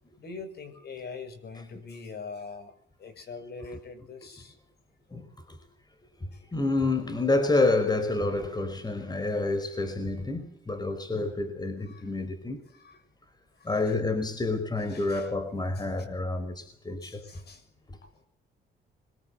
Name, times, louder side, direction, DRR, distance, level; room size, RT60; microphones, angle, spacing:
voice 1, 0.2-4.6 6.3-6.4 11.8-12.1 12.7-13.0 13.6-13.9 14.8-15.3 15.7-15.9 17.0-17.7, left 4 dB, 55° left, 6.8 m, -43 dB
voice 2, 5.1-5.6 6.2-12.6 13.6-17.2, left 2 dB, 20° left, 4.9 m, -28 dB
25.5 x 23.5 x 7.9 m
cardioid pair, 90°, 20 cm